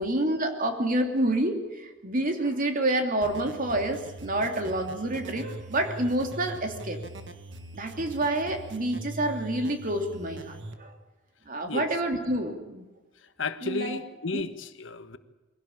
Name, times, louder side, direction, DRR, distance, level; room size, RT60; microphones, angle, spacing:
voice 1, 0.0-7.0 7.7-10.9 11.5-12.9 13.6-14.0 14.3-14.4, right 1 dB, 45° right, 3.0 m, -28 dB
sound 1, 3.2-10.7, right 2 dB, 70° right, 1.9 m, -42 dB
voice 2, 13.4-15.2, left 3 dB, 80° left, 1.4 m, -33 dB
23.0 x 17.0 x 8.8 m
head